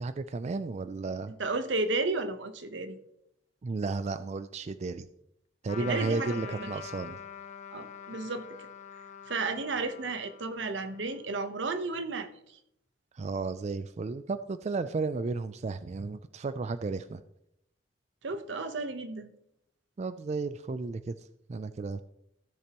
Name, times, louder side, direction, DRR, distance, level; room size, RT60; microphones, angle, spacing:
voice 1, 0.0-1.3 3.6-5.1 5.6-7.2 13.1-17.2 20.0-21.1 21.5-22.0, right 3 dB, 40° right, 12 dB, 0.4 m, -33 dB
voice 2, 1.4-3.0 5.8-6.7 7.7-8.5 9.3-12.3 18.2-19.3, right 3 dB, 90° right, 9 dB, 1.0 m, -33 dB
Trumpet, 5.7-11.5, left 7 dB, 40° left, 0.6 m, -45 dB
15.5 x 6.8 x 3.0 m, 0.77 s
head